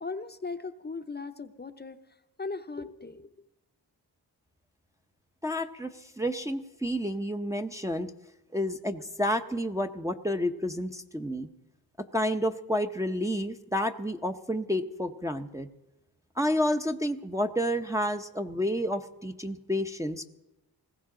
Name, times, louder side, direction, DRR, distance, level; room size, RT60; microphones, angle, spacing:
voice 1, 0.0-2.0 2.4-3.3, left 4 dB, 25° left, 8 dB, 0.7 m, -38 dB
voice 2, 5.4-8.1 8.5-11.5 12.1-15.7 16.4-20.3, equal, 10° right, 4 dB, 0.7 m, -30 dB
19.5 x 15.0 x 3.8 m, 0.95 s
cardioid pair, 65°, 41 cm